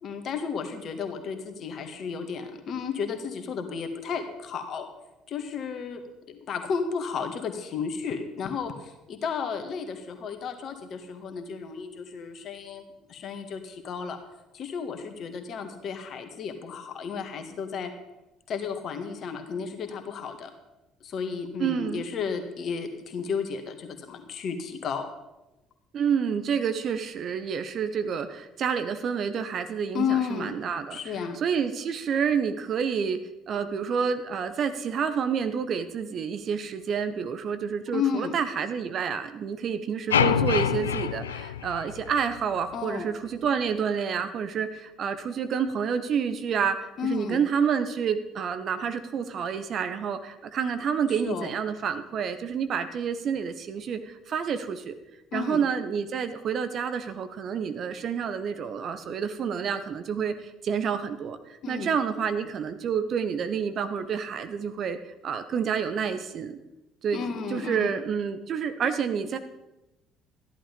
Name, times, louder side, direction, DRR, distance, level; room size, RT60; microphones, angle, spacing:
voice 1, 0.0-4.9 5.3-6.0 6.3-14.2 14.5-17.9 18.5-20.5 21.0-25.1 29.9-30.5 30.9-31.4 37.9-38.3 42.7-43.1 47.0-47.4 51.1-51.5 55.3-55.6 61.6-61.9 67.1-67.9, left 6 dB, 50° left, 6 dB, 1.8 m, -33 dB
voice 2, 21.6-22.1 25.9-31.0 31.4-33.2 33.5-54.9 55.3-65.0 65.2-66.6 67.0-69.4, right 7 dB, 45° right, 10 dB, 1.1 m, -29 dB
sound 1, 40.1-42.4, left 8 dB, 80° left, 0.4 m, -25 dB
13.5 x 11.0 x 5.3 m, 0.94 s
figure-of-eight pair, 55°, 0 cm